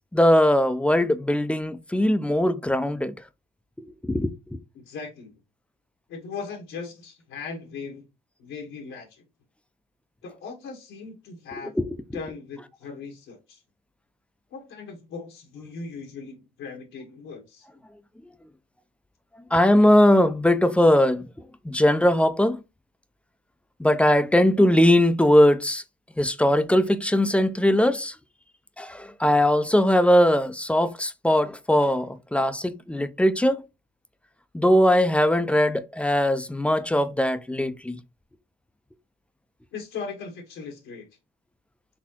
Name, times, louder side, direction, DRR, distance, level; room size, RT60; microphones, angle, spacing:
voice 1, 0.1-3.1 4.0-4.6 11.8-11.9 19.5-21.3 21.6-22.6 23.8-25.8 26.2-28.1 28.8-33.6 34.5-38.0, left 1 dB, 5° left, 0.4 m, -20 dB
voice 2, 4.7-5.3 6.1-8.1 8.4-9.2 10.2-11.7 12.1-13.6 14.5-17.7 39.7-41.1, left 5 dB, 85° left, 1.2 m, -38 dB
4.1 x 3.5 x 2.8 m
cardioid pair, 90°, 20 cm